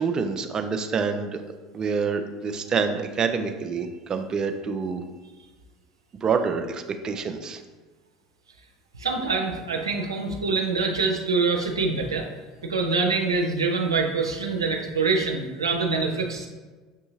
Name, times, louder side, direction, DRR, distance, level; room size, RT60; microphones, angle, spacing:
voice 1, 0.0-1.4 1.7-5.0 6.2-7.6, right 5 dB, 30° right, 7 dB, 0.4 m, -27 dB
voice 2, 9.0-12.3 12.6-16.5, right 4 dB, 80° right, 2 dB, 0.5 m, -25 dB
6.5 x 2.7 x 2.7 m, 1.3 s
figure-of-eight pair, 70°, 2 cm